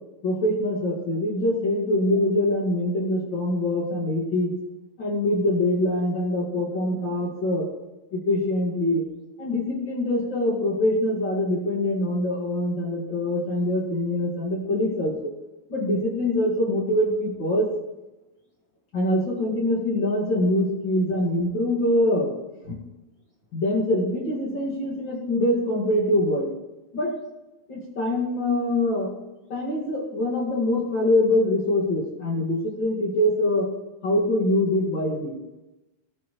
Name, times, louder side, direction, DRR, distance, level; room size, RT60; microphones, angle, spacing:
voice 1, 0.2-4.5 5.0-7.7 8.1-9.0 9.4-15.3 15.7-17.7 18.9-22.3 22.7-22.8 23.5-26.5 26.9-27.1 27.7-29.1 29.5-33.7 34.0-35.4, left 1 dB, 45° left, -4 dB, 1.5 m, -24 dB
21.5 x 12.5 x 3.2 m, 1.0 s
omnidirectional pair, 5.3 m